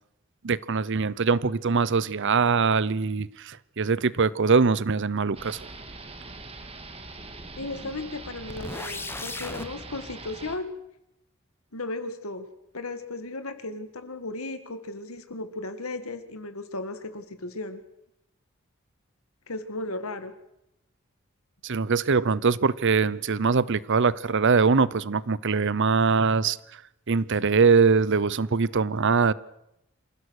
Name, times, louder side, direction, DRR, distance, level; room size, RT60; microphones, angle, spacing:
voice 1, 0.4-5.6 21.6-26.6 27.1-29.3, right 5 dB, 60° right, 0.7 m, -22 dB
sound 1, 5.3-10.6, right 2 dB, 30° right, 2.0 m, -42 dB
voice 2, 7.6-10.7 11.7-12.5 12.7-17.8 19.5-20.3, left 2 dB, 85° left, 2.1 m, -35 dB
sound 2, 8.5-9.7, left 2 dB, 10° left, 1.1 m, -36 dB
27.0 x 16.0 x 6.5 m
head